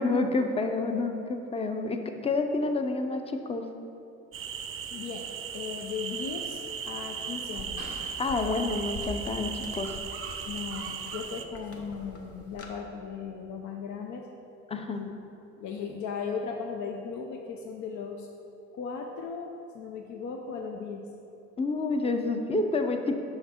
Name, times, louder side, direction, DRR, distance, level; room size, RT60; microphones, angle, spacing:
voice 1, 0.0-3.7 8.2-9.9 14.7-15.0 21.6-23.1, left 3 dB, 20° left, 6 dB, 0.5 m, -28 dB
sound 1, 4.3-11.4, right 7 dB, 45° right, 0.5 m, -37 dB
voice 2, 4.9-5.3 5.5-8.0 10.4-14.2 15.0-15.1 15.6-18.3 18.7-21.0, left 6 dB, 75° left, 3 dB, 0.6 m, -37 dB
sound 2, 6.1-12.7, left 1 dB, 50° left, 0.9 m, -45 dB
5.7 x 5.5 x 4.3 m, 2.8 s
cardioid pair, 90°, 30 cm